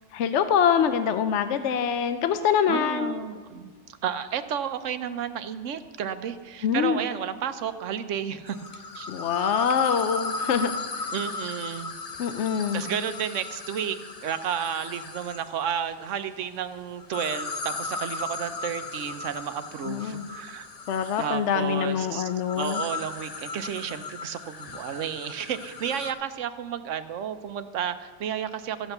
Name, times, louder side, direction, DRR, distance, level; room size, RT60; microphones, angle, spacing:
voice 1, 0.1-3.2 6.6-7.0 9.1-11.1 12.2-12.9 19.8-20.3 20.9-22.8, left 8 dB, 65° left, 9 dB, 0.9 m, -25 dB
voice 2, 2.7-3.7 4.0-8.6 8.9-9.1 11.1-11.9 12.7-14.0 14.2-20.7 21.2-22.3 22.6-28.9, right 8 dB, 70° right, 10 dB, 1.1 m, -32 dB
sound 1, 8.5-15.6 17.0-26.1, left 3 dB, 35° left, 0.7 m, -36 dB
14.5 x 8.2 x 6.6 m, 1.5 s
omnidirectional pair, 1.4 m